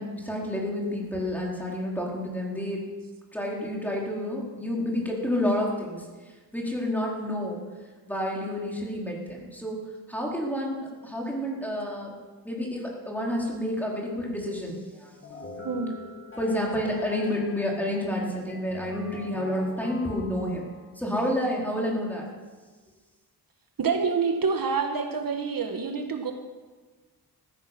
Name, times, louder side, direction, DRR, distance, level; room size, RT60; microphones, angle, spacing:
voice 1, 0.0-2.8 3.3-6.0 6.5-7.6 8.1-9.8 10.1-12.1 12.4-15.2 16.4-20.7 21.0-22.3, left 1 dB, 5° left, -3 dB, 4.5 m, -29 dB
sound 1, 15.2-20.9, left 2 dB, 35° left, 2.4 m, -43 dB
voice 2, 15.6-16.0 23.8-26.3, right 5 dB, 60° right, 5 dB, 1.6 m, -27 dB
15.0 x 15.0 x 6.1 m, 1.3 s
wide cardioid pair, 105°, 38 cm